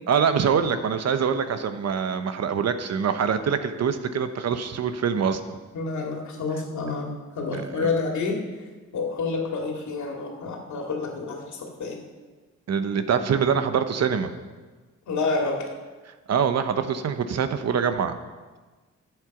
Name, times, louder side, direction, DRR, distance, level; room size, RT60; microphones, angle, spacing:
voice 1, 0.1-5.6 7.5-7.9 12.7-14.3 16.3-18.2, right 7 dB, 60° right, 9 dB, 1.0 m, -24 dB
voice 2, 5.7-8.4 8.9-12.0 15.1-15.7, left 4 dB, 75° left, 1 dB, 2.4 m, -28 dB
13.0 x 8.0 x 5.9 m, 1.3 s
cardioid pair, 105°, 29 cm